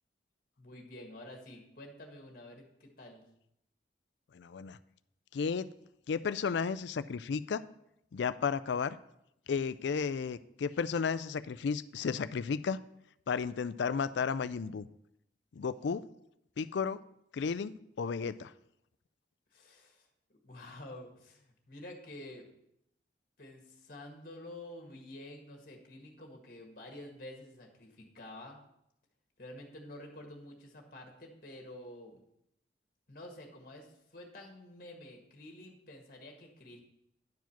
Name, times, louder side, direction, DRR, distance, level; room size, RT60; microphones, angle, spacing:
voice 1, 0.6-3.2 19.5-20.1 20.4-22.5 23.4-28.6 29.4-32.2 33.1-36.8, left 1 dB, 50° left, 2 dB, 1.7 m, -49 dB
voice 2, 4.3-4.8 5.3-5.7 6.1-7.6 8.1-9.0 9.5-12.8 13.3-14.9 15.5-16.0 16.6-17.0 17.3-18.5, left 5 dB, 70° left, 15 dB, 0.4 m, -33 dB
10.5 x 4.8 x 5.9 m, 0.79 s
head